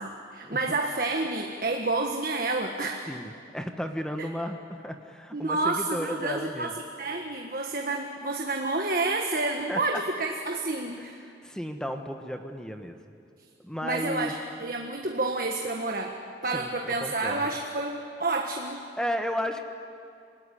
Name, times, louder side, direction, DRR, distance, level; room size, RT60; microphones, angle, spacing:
voice 1, 0.0-3.1 4.2-4.3 5.3-11.2 13.8-16.2 16.4-18.8, right 2 dB, 50° right, 2 dB, 1.6 m, -29 dB
voice 2, 3.1-6.7 9.7-9.8 11.0-13.0 13.6-14.3 16.5-17.5 19.0-19.7, equal, 5° left, 5 dB, 1.4 m, -34 dB
28.0 x 20.0 x 10.0 m, 2.4 s
head